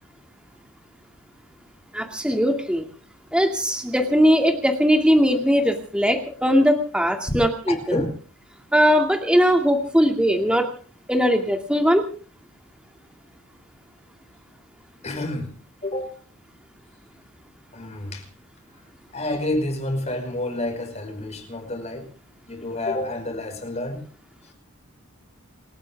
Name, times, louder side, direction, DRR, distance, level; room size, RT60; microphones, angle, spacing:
voice 1, 1.9-2.8 3.3-8.0 8.7-10.7 11.1-12.0, equal, 5° right, 4 dB, 2.3 m, -20 dB
voice 2, 7.7-8.2 15.0-15.5 15.8-16.2 17.7-18.3 19.1-22.1 22.5-24.0, left 1 dB, 30° left, 5 dB, 5.5 m, -29 dB
28.5 x 14.0 x 3.5 m, 0.40 s
head